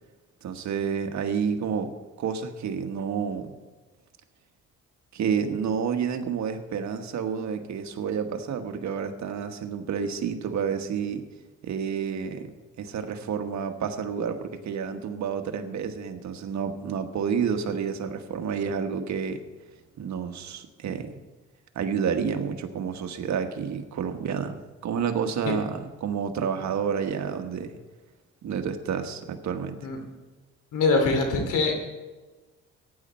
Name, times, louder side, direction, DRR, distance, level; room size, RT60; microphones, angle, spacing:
voice 1, 0.4-1.9 2.2-3.5 5.1-11.2 11.6-12.5 12.8-19.4 20.0-21.2 21.7-27.8 28.4-29.8, right 7 dB, 65° right, 6 dB, 1.4 m, -29 dB
voice 2, 30.7-31.7, left 3 dB, 85° left, 4 dB, 2.7 m, -23 dB
15.0 x 10.0 x 4.4 m, 1.2 s
cardioid pair, 90°, 30 cm